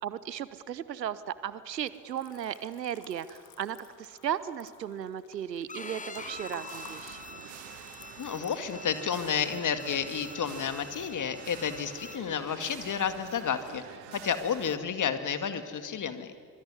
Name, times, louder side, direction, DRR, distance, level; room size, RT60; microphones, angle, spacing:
voice 1, 0.0-7.3, right 10 dB, 80° right, 16 dB, 0.9 m, -36 dB
Liquid, 1.7-11.9 12.2-12.9 13.1-13.9, left 7 dB, 75° left, 2.8 m, -55 dB
Bowed string instrument, 5.7-12.2, left 4 dB, 15° left, 1.3 m, -46 dB
sound 1, 6.1-14.8, right 12 dB, 60° right, 1.5 m, -47 dB
voice 2, 8.2-13.8 14.1-16.3, left 7 dB, 40° left, 10 dB, 2.2 m, -31 dB
24.5 x 23.5 x 9.7 m, 2.2 s
figure-of-eight pair, 50°, 49 cm